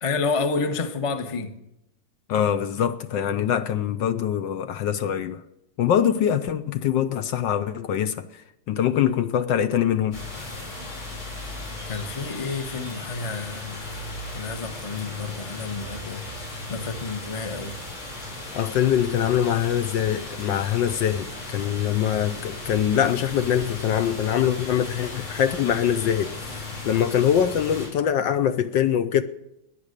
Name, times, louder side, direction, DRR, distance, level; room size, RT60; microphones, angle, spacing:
voice 1, 0.0-1.5 11.9-13.9 14.3-16.2 16.7-17.7, left 4 dB, 25° left, 0.7 m, -29 dB
voice 2, 2.3-5.4 5.8-10.2 18.5-29.2, left 9 dB, 70° left, 1.3 m, -23 dB
sound 1, 10.1-27.9, left 2 dB, 90° left, 6.4 m, -36 dB
19.5 x 10.0 x 6.6 m
omnidirectional pair, 2.3 m